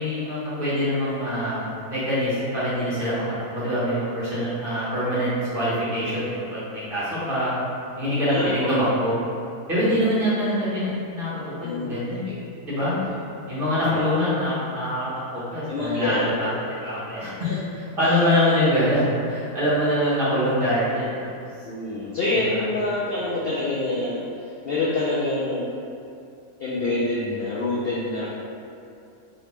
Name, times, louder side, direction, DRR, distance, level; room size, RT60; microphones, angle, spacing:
voice 1, 0.0-3.3 3.5-7.5 8.0-9.1 9.7-11.3 11.6-12.2 12.6-12.9 13.5-17.3 18.0-21.3 22.5-22.6, equal, 40° right, -10 dB, 1.1 m, -24 dB
voice 2, 11.6-11.9 12.2-12.4 12.8-13.0 13.9-14.1 15.7-16.6 17.4-17.6 21.6-25.7 26.6-28.3, left 2 dB, 85° left, -7 dB, 0.5 m, -26 dB
3.2 x 2.8 x 3.0 m, 2.6 s
omnidirectional pair, 1.6 m